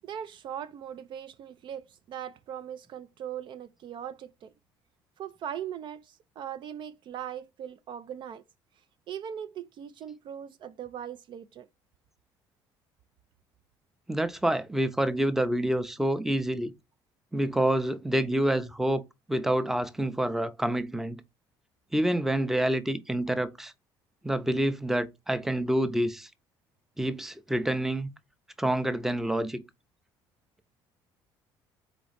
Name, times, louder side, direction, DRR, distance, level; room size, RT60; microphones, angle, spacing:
voice 1, 0.0-4.5 5.2-8.4 9.1-11.7, right 9 dB, 55° right, 0.4 m, -40 dB
voice 2, 14.1-16.7 17.3-19.0 19.3-21.2 21.9-23.7 24.2-26.3 27.0-28.1 28.6-29.6, right 1 dB, 5° right, 0.6 m, -27 dB
4.2 x 3.0 x 4.0 m
supercardioid pair, 75°, 10 cm